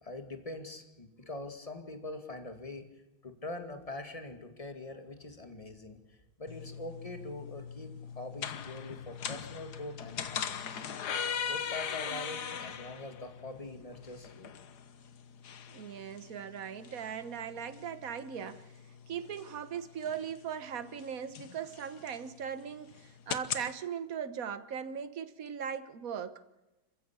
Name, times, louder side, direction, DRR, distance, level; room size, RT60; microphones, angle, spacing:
voice 1, 0.0-2.9 3.2-6.0 6.4-10.9 11.5-14.5, left 2 dB, 15° left, 2.3 m, -43 dB
sound 1, 6.5-23.7, left 7 dB, 55° left, 1.5 m, -41 dB
voice 2, 15.7-18.7 19.1-26.4, right 8 dB, 50° right, 1.5 m, -39 dB
27.0 x 15.5 x 8.4 m
omnidirectional pair, 2.2 m